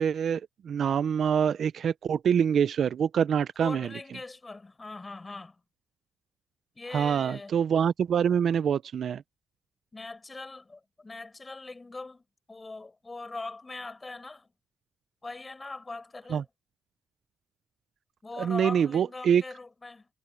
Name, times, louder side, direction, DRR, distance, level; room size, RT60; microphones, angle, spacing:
voice 1, 0.0-3.9 6.9-9.2 16.3-16.4 18.4-19.4, right 8 dB, 55° right, 0.5 m, -25 dB
voice 2, 3.6-5.6 6.7-7.6 9.9-14.5 15.2-16.5 18.2-20.1, left 3 dB, 20° left, 6.2 m, -41 dB
cardioid pair, 140°, 0 cm